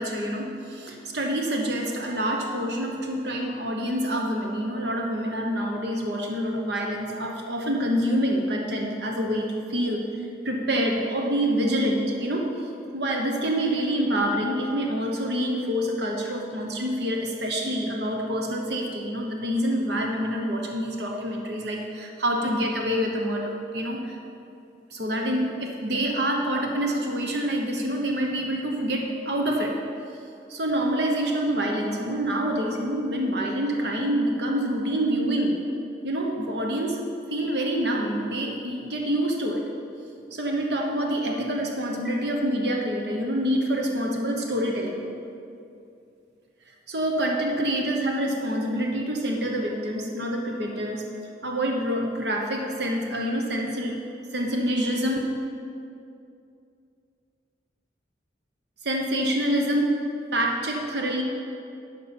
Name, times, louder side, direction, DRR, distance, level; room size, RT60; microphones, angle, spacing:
voice 1, 0.0-24.2 24.9-29.7 30.5-35.6 36.0-37.0 37.3-39.6 40.3-45.1 46.9-51.1 51.4-54.0 54.3-55.2 58.8-59.9 60.3-61.2, equal, 70° right, 1 dB, 1.0 m, -26 dB
11.5 x 5.4 x 7.0 m, 2.6 s
head